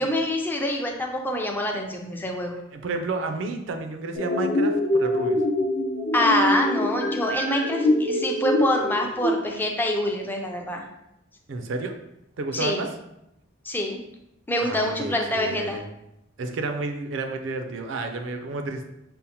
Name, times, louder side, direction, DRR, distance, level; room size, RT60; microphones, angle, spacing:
voice 1, 0.0-2.6 6.1-10.8 12.5-12.8 13.7-14.0 14.5-15.8, left 1 dB, 10° left, 2 dB, 0.4 m, -25 dB
voice 2, 2.7-5.4 11.5-11.9 12.4-12.9 14.6-15.8 16.4-18.9, right 3 dB, 65° right, 5 dB, 0.4 m, -31 dB
sound 1, 4.1-9.3, left 1 dB, 65° left, 0.7 m, -24 dB
5.3 x 2.1 x 2.8 m, 0.85 s
head